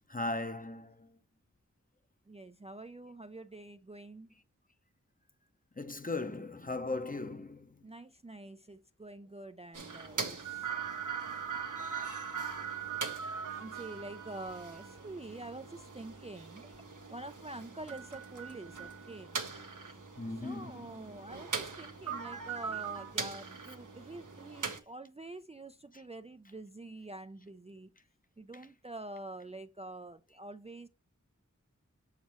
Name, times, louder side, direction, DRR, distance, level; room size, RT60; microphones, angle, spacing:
voice 1, 0.1-1.1 5.8-7.7 20.2-21.0, left 2 dB, 25° left, 0.8 m, -38 dB
voice 2, 2.3-4.3 7.8-10.7 12.8-13.0 13.5-19.4 20.4-27.9 28.4-30.9, right 2 dB, 20° right, 0.4 m, -47 dB
sound 1, 9.7-24.8, right 5 dB, 85° right, 1.1 m, -40 dB
7.3 x 4.9 x 3.0 m
wide cardioid pair, 40°, 30 cm